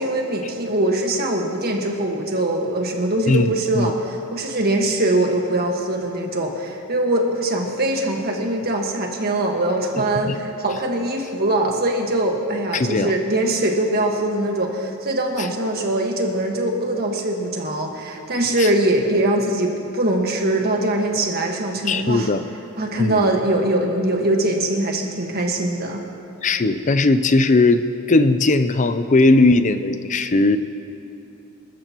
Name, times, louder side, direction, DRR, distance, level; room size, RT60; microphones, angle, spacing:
voice 1, 0.0-22.3 22.8-26.1, right 1 dB, 45° right, 1 dB, 1.7 m, -22 dB
voice 2, 3.3-3.9 10.3-10.4 12.7-13.1 21.9-22.4 23.0-23.3 26.4-30.6, left 2 dB, 35° left, 11 dB, 0.5 m, -18 dB
26.5 x 13.0 x 3.0 m, 2.7 s
head